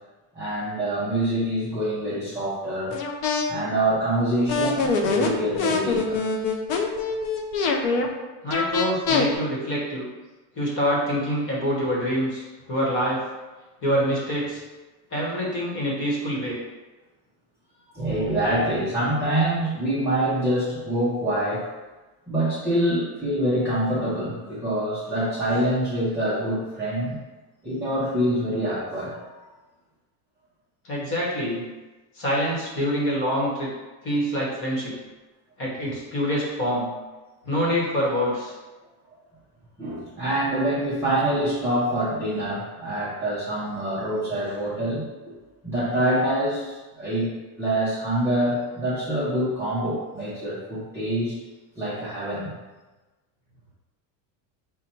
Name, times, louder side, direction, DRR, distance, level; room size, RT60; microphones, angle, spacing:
voice 1, 0.3-3.0 3.5-6.3 17.9-21.7 22.3-27.2 27.6-29.2 39.8-45.4 45.6-51.3 51.8-52.5, right 1 dB, 5° right, -13 dB, 0.5 m, -25 dB
sound 1, 2.9-3.4 4.5-8.1 8.5-9.3, left 4 dB, 45° left, 0.5 m, -23 dB
voice 2, 8.4-10.1 10.5-13.2 13.8-14.6 15.1-16.6 30.8-31.6 32.1-33.7 34.0-34.9 35.6-36.9 37.4-38.5, equal, 25° left, -4 dB, 1.1 m, -25 dB
5.2 x 2.2 x 4.3 m, 1.2 s
cardioid pair, 170°, 48 cm